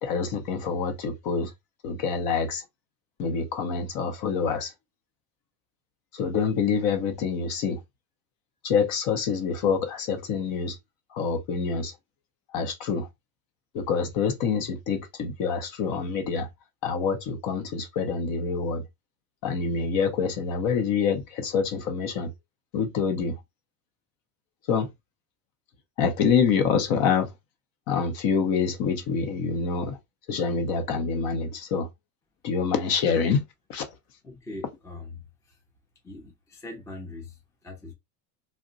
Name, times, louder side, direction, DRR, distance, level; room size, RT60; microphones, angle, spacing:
voice 1, 0.0-1.5 1.8-2.6 3.2-4.7 6.1-7.8 8.6-10.8 11.1-11.9 12.5-13.1 13.7-16.5 16.8-18.8 19.4-22.3 22.7-23.4 24.7-24.9 26.0-27.3 27.9-30.0 30.3-31.9 32.4-33.4 33.7-33.8, left 6 dB, 55° left, 0.8 m, -26 dB
voice 2, 34.2-35.6 36.0-37.9, left 2 dB, 5° left, 0.5 m, -42 dB
2.3 x 2.2 x 3.8 m
supercardioid pair, 135°, 44 cm